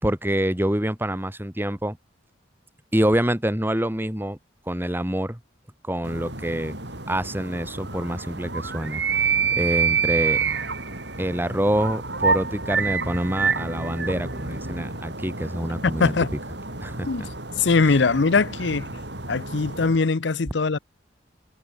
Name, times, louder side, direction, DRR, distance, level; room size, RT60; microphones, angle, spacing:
voice 1, 0.0-2.0 2.9-4.4 4.7-5.4 5.8-6.8 7.1-9.0 9.6-10.4 11.2-16.1 16.8-17.3, right 1 dB, 10° right, 2.1 m, -26 dB
sound 1, 6.0-20.0, right 5 dB, 60° right, 6.0 m, -28 dB
voice 2, 16.0-16.3 17.1-17.3 17.6-18.9 19.3-20.8, left 4 dB, 65° left, 0.7 m, -21 dB
head